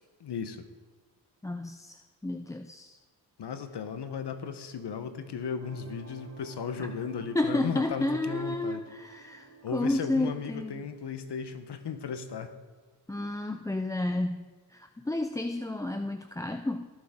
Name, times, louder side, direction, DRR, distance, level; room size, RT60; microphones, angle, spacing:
voice 1, 0.2-0.7 3.4-8.8 9.6-12.5, left 6 dB, 65° left, 9 dB, 1.1 m, -36 dB
voice 2, 1.4-3.0 6.8-6.9 7.3-10.7 13.1-16.9, left 2 dB, 10° left, 7 dB, 0.4 m, -31 dB
sound 1, 5.6-11.5, right 3 dB, 30° right, 2.1 m, -52 dB
19.5 x 7.5 x 3.7 m, 1.3 s
cardioid pair, 65°, 44 cm